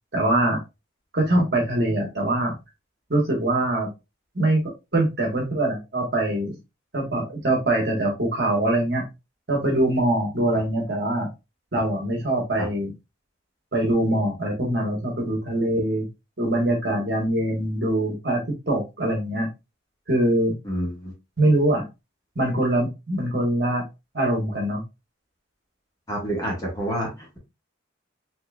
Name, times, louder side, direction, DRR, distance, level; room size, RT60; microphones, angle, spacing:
voice 1, 0.1-0.6 1.1-2.5 3.1-3.9 4.3-4.6 4.9-6.6 6.9-9.1 9.5-11.3 11.7-12.9 13.7-16.1 16.4-19.5 20.1-20.5 21.4-21.9 22.3-23.8 24.1-24.8, right 1 dB, 60° right, 0 dB, 1.5 m, -23 dB
voice 2, 20.6-21.1 26.1-27.4, right 1 dB, 20° left, -3 dB, 1.5 m, -28 dB
4.3 x 3.1 x 2.4 m, 0.24 s
head